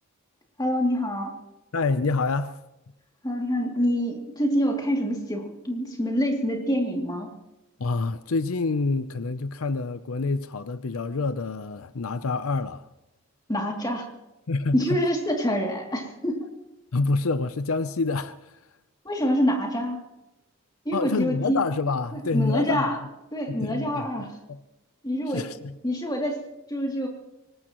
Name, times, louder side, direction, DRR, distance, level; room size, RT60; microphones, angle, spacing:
voice 1, 0.6-1.3 3.2-7.3 13.5-14.1 14.7-16.5 19.0-20.0 20.8-21.6 22.3-23.0 23.3-24.3 25.0-25.5 25.8-26.4 26.7-27.1, equal, 20° left, 2.8 m, -26 dB
voice 2, 1.7-2.6 7.8-12.9 14.5-15.0 16.9-18.6 20.9-22.9 23.5-24.6 25.3-25.7, left 3 dB, 85° left, 0.6 m, -27 dB
24.0 x 19.5 x 3.1 m
head